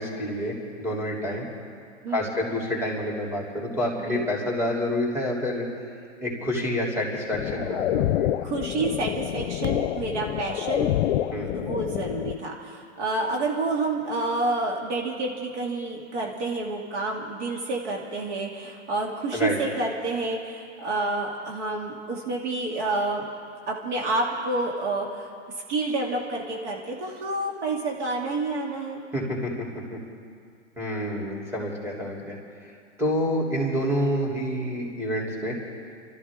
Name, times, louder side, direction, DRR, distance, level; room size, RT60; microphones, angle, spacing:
voice 1, 0.0-1.5 2.1-5.6 6.2-8.5 11.3-11.5 19.3-19.6 29.1-29.5 29.9-30.0 30.8-32.7 33.0-35.6, left 1 dB, 5° right, -3 dB, 3.2 m, -28 dB
voice 2, 2.0-2.4 4.0-4.2 8.4-10.9 11.4-23.3 23.7-25.3 25.7-29.0, right 2 dB, 65° right, -1 dB, 2.6 m, -29 dB
sound 1, 7.3-12.4, left 13 dB, 60° left, 0.6 m, -27 dB
27.0 x 13.5 x 3.7 m, 2.3 s
hypercardioid pair, 120°, 36 cm